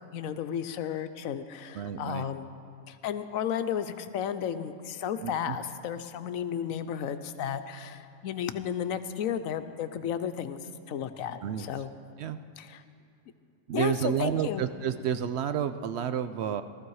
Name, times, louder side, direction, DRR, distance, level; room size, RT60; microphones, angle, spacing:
voice 1, 0.0-2.5 2.9-10.6 10.9-11.9 12.6-12.8 13.7-14.6, left 8 dB, 85° left, 11 dB, 1.1 m, -33 dB
voice 2, 1.7-2.3 5.2-5.6 11.4-11.7 12.2-12.4 13.7-16.6, right 8 dB, 65° right, 11 dB, 0.7 m, -30 dB
17.0 x 13.5 x 4.7 m, 2.4 s
omnidirectional pair, 1.4 m